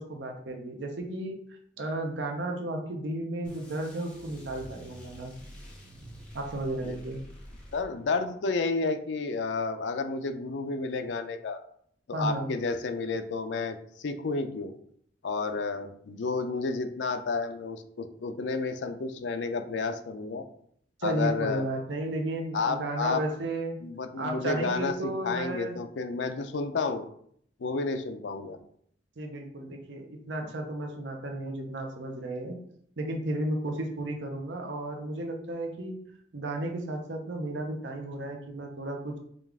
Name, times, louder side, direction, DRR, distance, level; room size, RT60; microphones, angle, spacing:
voice 1, 0.0-5.3 6.3-7.2 12.1-12.5 21.0-23.8 24.2-25.8 29.2-32.6 33.0-36.0 36.3-39.2, right 1 dB, 80° right, 3 dB, 0.7 m, -33 dB
sound 1, 3.4-8.3, equal, 5° left, 1.0 m, -48 dB
voice 2, 7.7-11.6 12.1-14.7 15.2-20.4 21.0-21.6 22.5-23.2 23.8-27.0 27.6-28.6, left 4 dB, 80° left, 8 dB, 0.4 m, -31 dB
5.2 x 2.4 x 3.5 m, 0.65 s
head